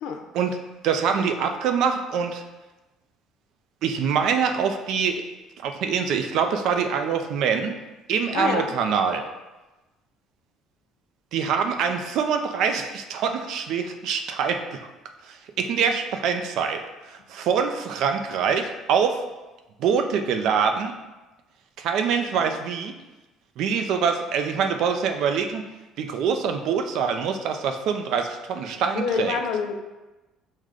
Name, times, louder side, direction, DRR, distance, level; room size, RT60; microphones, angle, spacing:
voice 1, 0.8-2.4 3.8-5.2 5.6-7.7 8.1-9.2 11.3-14.9 15.3-19.2 19.8-20.9 21.8-22.9 23.6-25.6 26.0-29.4, right 6 dB, 60° right, 6 dB, 0.4 m, -24 dB
voice 2, 8.3-8.7 29.0-29.7, left 6 dB, 70° left, 5 dB, 0.4 m, -26 dB
4.7 x 2.1 x 3.7 m, 1.1 s
cardioid pair, 145°, 0 cm